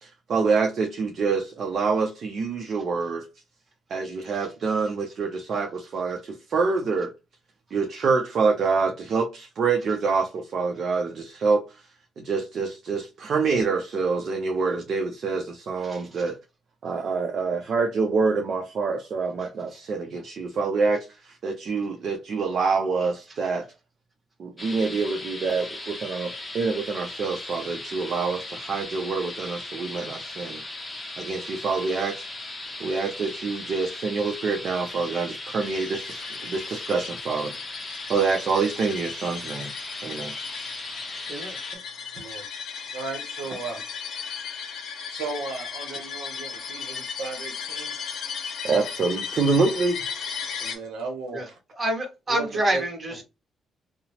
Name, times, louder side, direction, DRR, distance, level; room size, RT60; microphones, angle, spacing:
voice 1, 0.0-3.2 3.9-7.1 7.7-11.6 12.2-16.4 16.8-23.7 24.4-30.6 31.2-32.5 32.8-39.7 40.0-40.6 41.7-41.8 48.6-50.0, right 4 dB, 55° right, 0.5 m, -26 dB
sound 1, 24.6-41.8, left 2 dB, 20° left, 0.7 m, -38 dB
sound 2, 35.6-50.7, left 6 dB, 65° left, 0.5 m, -36 dB
voice 2, 42.1-42.5 42.9-43.8 44.8-44.9 45.1-48.0 50.6-51.6 52.3-52.8 53.1-53.2, right 4 dB, 85° right, 0.7 m, -35 dB
voice 3, 51.8-53.2, right 1 dB, 25° right, 1.1 m, -27 dB
2.8 x 2.0 x 2.8 m
cardioid pair, 90°, 0 cm